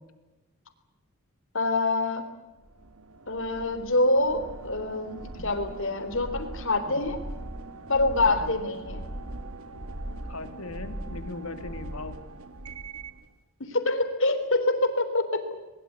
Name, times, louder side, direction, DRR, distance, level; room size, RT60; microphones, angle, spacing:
voice 1, 1.5-2.2 3.3-5.2 5.4-7.2 7.9-9.0 13.6-15.4, left 2 dB, 60° left, 8 dB, 3.6 m, -25 dB
sound 1, 2.6-13.2, right 1 dB, 80° right, 2.0 m, -40 dB
voice 2, 8.3-8.6 10.3-12.2, left 3 dB, 80° left, 8 dB, 2.7 m, -39 dB
22.0 x 22.0 x 8.3 m, 1.1 s
head